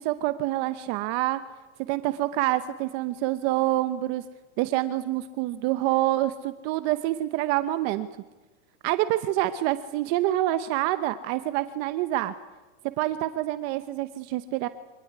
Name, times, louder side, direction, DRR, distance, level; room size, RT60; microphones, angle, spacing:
voice 1, 0.0-1.4 1.9-4.2 4.6-8.1 8.8-12.3 13.0-14.7, right 15 dB, 40° right, 12 dB, 0.9 m, -26 dB
25.0 x 18.0 x 9.6 m, 1.2 s
supercardioid pair, 160°, 36 cm